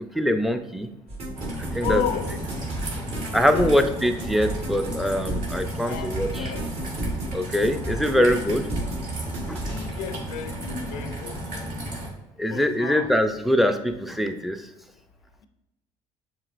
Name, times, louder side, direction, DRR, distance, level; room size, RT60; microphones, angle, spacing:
voice 1, 0.1-0.9 1.7-2.0 3.3-6.5 7.3-8.7 9.5-9.6 12.4-14.7, equal, ahead, 7 dB, 0.5 m, -23 dB
sound 1, 1.1-9.9, right 1 dB, 45° right, 1.5 m, -32 dB
Raindrop / Trickle dribble, 1.3-12.1, right 1 dB, 65° right, 1.5 m, -34 dB
voice 2, 1.8-2.5 3.3-4.1 5.8-6.7 9.6-11.7 12.5-13.1, left 8 dB, 80° left, 8 dB, 0.5 m, -33 dB
7.0 x 3.0 x 2.5 m, 0.96 s
supercardioid pair, 75°, 15 cm